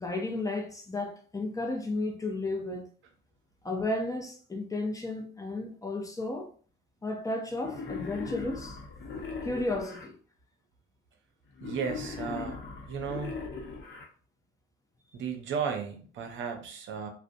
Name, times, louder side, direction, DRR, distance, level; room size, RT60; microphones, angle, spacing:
voice 1, 0.0-2.9 3.6-6.5 7.0-8.8 9.4-10.2, left 2 dB, 15° left, 0.5 m, -33 dB
Wild animals, 7.6-10.1 11.6-14.1, left 4 dB, 65° left, 0.7 m, -39 dB
voice 2, 11.6-12.6 12.9-13.4 15.1-17.1, right 6 dB, 75° right, 0.5 m, -34 dB
2.4 x 2.1 x 2.5 m
cardioid pair, 90°, 20 cm